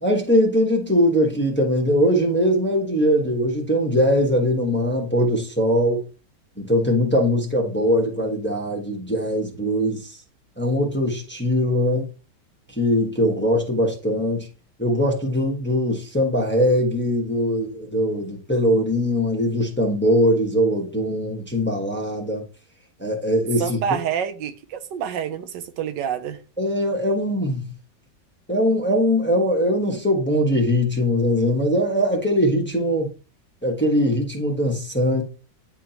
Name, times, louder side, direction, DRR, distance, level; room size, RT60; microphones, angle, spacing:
voice 1, 0.0-6.0 6.6-10.2 10.6-12.1 12.7-14.5 14.8-22.4 23.0-23.8 26.6-27.6 28.5-33.1 33.6-35.2, equal, 5° left, 1.1 m, -21 dB
voice 2, 23.6-26.4, right 8 dB, 85° right, 1.4 m, -27 dB
9.9 x 3.6 x 2.9 m
omnidirectional pair, 1.9 m